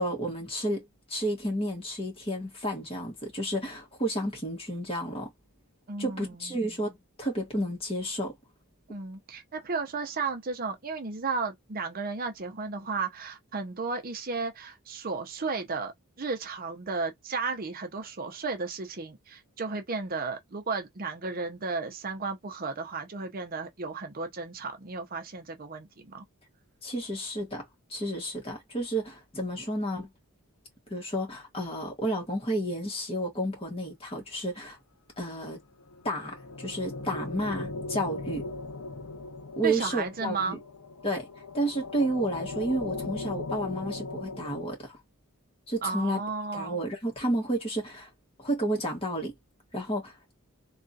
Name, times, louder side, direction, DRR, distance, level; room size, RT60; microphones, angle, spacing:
voice 1, 0.0-5.3 6.0-8.3 26.8-27.6 27.9-30.1 30.9-34.8 35.2-35.6 36.0-38.5 39.6-40.6 41.0-41.2 41.5-45.0 45.7-46.2 46.5-48.1 48.4-49.4 49.7-50.1, right 1 dB, 25° left, 1.5 m, -31 dB
voice 2, 5.9-6.7 8.9-26.2 39.6-40.6 45.8-46.8, right 4 dB, 40° right, 0.6 m, -34 dB
sound 1, 35.8-44.6, left 3 dB, 75° left, 0.7 m, -38 dB
3.5 x 2.4 x 2.6 m
head